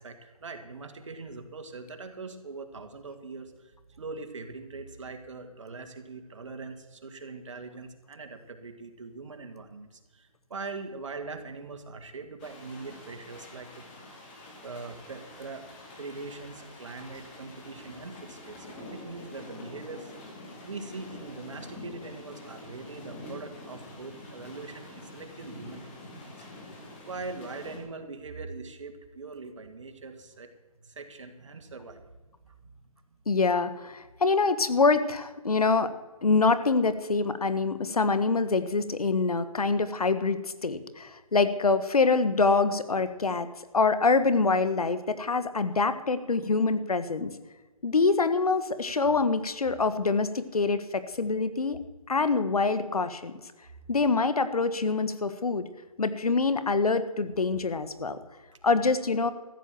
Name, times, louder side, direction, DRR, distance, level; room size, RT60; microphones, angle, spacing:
voice 1, 0.0-13.8 14.6-15.7 16.0-20.1 20.6-26.0 26.4-26.5 26.7-30.5 30.8-32.8, right 3 dB, 55° right, 6 dB, 2.0 m, -42 dB
sound 1, 12.4-27.8, left 2 dB, 20° left, 2.5 m, -46 dB
voice 2, 33.3-35.9 36.2-43.5 43.7-47.3 47.8-51.8 52.1-53.3 53.9-55.7 56.0-58.2 58.6-59.3, left 4 dB, 85° left, 12 dB, 1.4 m, -25 dB
14.0 x 8.4 x 7.5 m, 1.3 s
hypercardioid pair, 165°, 19 cm